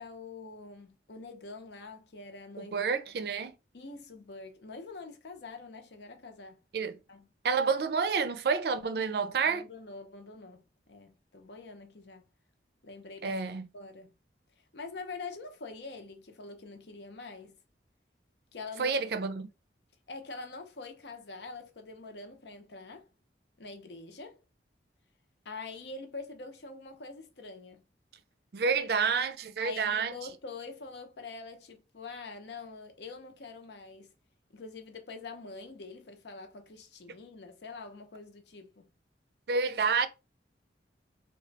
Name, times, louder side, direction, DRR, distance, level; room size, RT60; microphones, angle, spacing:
voice 1, 0.0-2.9 3.7-6.6 7.1-7.3 8.8-10.6 10.9-12.2 12.8-13.4 13.7-14.1 14.6-17.6 18.5-19.0 20.1-23.1 23.6-24.4 25.4-27.8 29.6-34.1 34.5-38.9, left 3 dB, 75° left, 0.8 m, -45 dB
voice 2, 2.6-3.5 6.7-7.0 7.4-9.6 13.2-13.7 18.8-19.5 28.5-30.1 39.5-40.1, right 5 dB, 60° right, 0.4 m, -29 dB
3.0 x 2.3 x 3.9 m
head